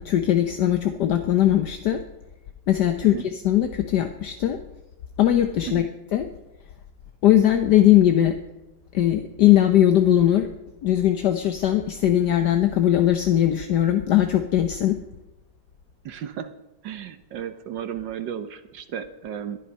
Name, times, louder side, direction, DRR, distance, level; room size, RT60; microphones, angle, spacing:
voice 1, 0.0-2.0 2.7-4.6 5.2-5.8 6.1-6.3 7.2-8.3 8.9-10.5 10.8-15.0, left 12 dB, 70° left, 7 dB, 1.4 m, -20 dB
voice 2, 16.0-16.5 16.8-19.6, right 9 dB, 75° right, 10 dB, 1.6 m, -34 dB
18.0 x 11.0 x 5.5 m, 0.97 s
omnidirectional pair, 2.0 m